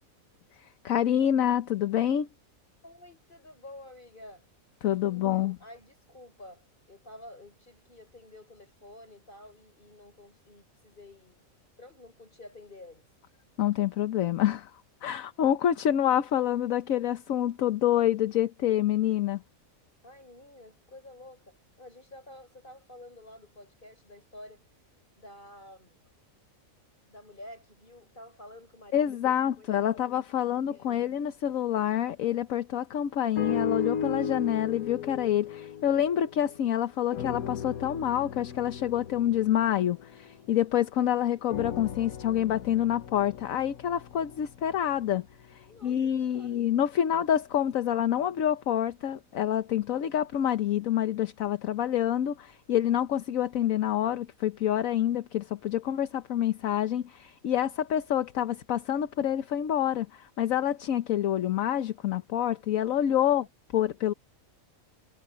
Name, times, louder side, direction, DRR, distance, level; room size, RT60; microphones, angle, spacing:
voice 1, 0.8-2.3 4.8-5.6 13.6-14.7 15.0-19.4 28.9-45.2 45.5-63.4 63.7-64.1, left 10 dB, 75° left, 1.2 m, -27 dB
voice 2, 2.8-4.5 5.0-13.1 20.0-24.7 25.1-26.0 27.1-31.1 45.7-46.6 63.2-63.5, left 1 dB, 35° left, 6.6 m, -50 dB
sound 1, 33.4-36.7 37.1-40.9 41.5-45.7 46.4-46.5, left 6 dB, 90° left, 1.5 m, -36 dB
omnidirectional pair, 1.5 m